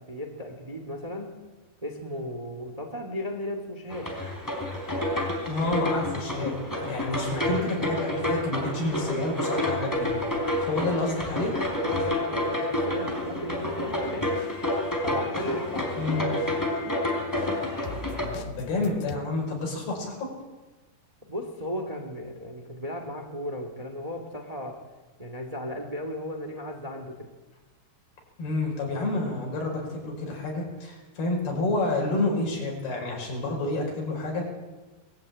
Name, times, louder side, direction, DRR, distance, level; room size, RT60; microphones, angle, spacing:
voice 1, 0.1-1.3 1.8-4.1 10.7-11.1 11.8-14.3 15.0-16.3 21.3-24.8 25.2-27.2, left 1 dB, 15° right, 3 dB, 1.2 m, -35 dB
sound 1, 3.9-18.3, left 1 dB, 5° left, 3.4 m, -29 dB
voice 2, 5.5-6.6 6.8-10.1 10.6-11.5 16.0-16.3 18.3-20.3 28.4-34.5, left 2 dB, 70° left, 0 dB, 7.2 m, -29 dB
sound 2, 13.8-19.2, left 6 dB, 90° left, 3.1 m, -41 dB
21.0 x 14.5 x 8.7 m, 1.2 s
omnidirectional pair, 4.6 m